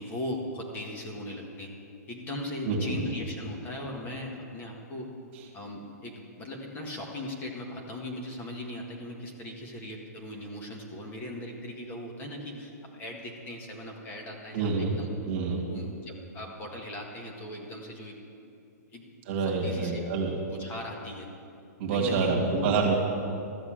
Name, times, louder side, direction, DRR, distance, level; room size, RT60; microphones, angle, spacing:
voice 1, 0.0-1.7 2.1-5.1 5.5-15.1 15.7-18.2 18.9-19.1 19.4-20.0 20.5-21.3 21.9-22.9, left 1 dB, 20° left, 0 dB, 1.8 m, -38 dB
voice 2, 2.6-3.2 14.5-15.0 15.2-15.7 19.3-20.3 21.8-22.9, right 4 dB, 40° right, -1 dB, 2.2 m, -27 dB
13.5 x 7.9 x 7.6 m, 2.5 s
hypercardioid pair, 145°, 9 cm